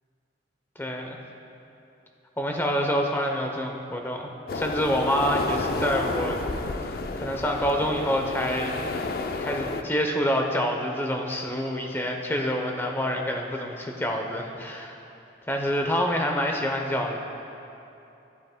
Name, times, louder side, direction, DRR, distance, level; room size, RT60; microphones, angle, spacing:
voice 1, 0.8-1.2 2.4-6.4 7.2-8.7 9.4-15.0 15.5-17.2, equal, 10° left, 2 dB, 0.7 m, -27 dB
sound 1, 4.5-9.8, left 3 dB, 55° left, 0.5 m, -31 dB
16.0 x 8.5 x 2.2 m, 2.8 s
head